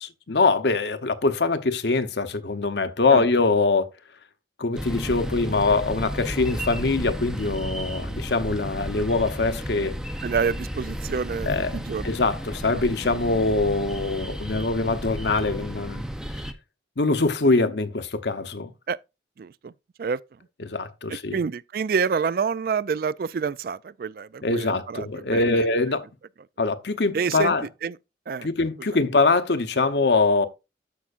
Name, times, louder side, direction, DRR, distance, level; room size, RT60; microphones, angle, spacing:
voice 1, 0.0-3.9 4.6-10.0 11.5-16.0 16.3-16.4 17.0-18.7 20.6-21.4 24.4-26.1 26.6-27.7 28.4-30.5, left 3 dB, 75° left, 0.9 m, -23 dB
sound 1, 4.7-16.5, equal, 5° right, 0.6 m, -33 dB
voice 2, 10.2-12.1 12.7-12.8 18.9-19.0 19.4-19.7 20.0-20.2 21.1-25.7 27.1-28.0 28.3-28.5, right 6 dB, 55° right, 0.3 m, -28 dB
13.5 x 5.7 x 2.5 m
head